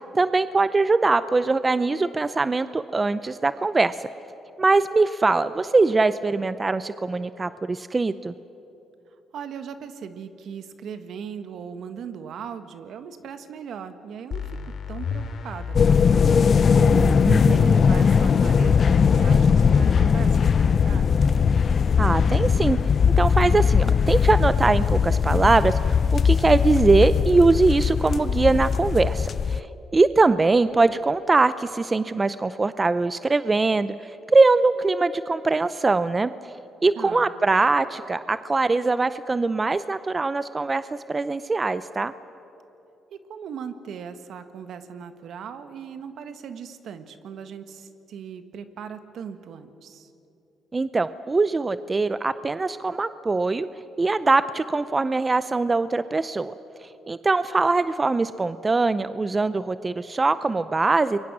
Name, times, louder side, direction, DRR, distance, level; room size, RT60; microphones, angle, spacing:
voice 1, 0.1-4.1 4.6-8.3 17.2-17.6 22.0-22.8 23.2-29.7 29.9-36.3 36.8-42.1 50.7-53.7 54.0-56.5 57.1-61.2, right 3 dB, 25° right, 14 dB, 0.6 m, -22 dB
voice 2, 9.3-14.5 14.9-16.6 16.8-21.2 36.9-37.3 43.1-50.1, right 7 dB, 70° right, 9 dB, 1.5 m, -39 dB
sound 1, 14.3-19.9, left 4 dB, 60° left, 2.4 m, -31 dB
sound 2, 15.8-29.6, left 6 dB, 45° left, 0.5 m, -19 dB
28.5 x 23.0 x 6.3 m, 3.0 s
cardioid pair, 90°, 0 cm